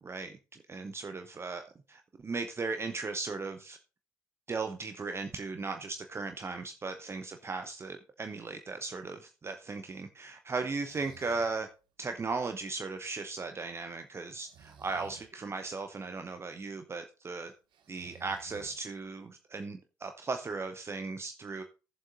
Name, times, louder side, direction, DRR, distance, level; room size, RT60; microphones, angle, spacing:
voice 1, 0.0-1.6 1.9-3.8 4.5-11.7 12.0-17.5 17.9-21.6, right 4 dB, 25° right, 7 dB, 0.7 m, -37 dB
Breathing, 10.7-11.6 14.3-15.3 17.7-19.1, right 8 dB, 50° right, 1.1 m, -54 dB
16.0 x 7.4 x 2.5 m, 0.34 s
figure-of-eight pair, 45°, 10 cm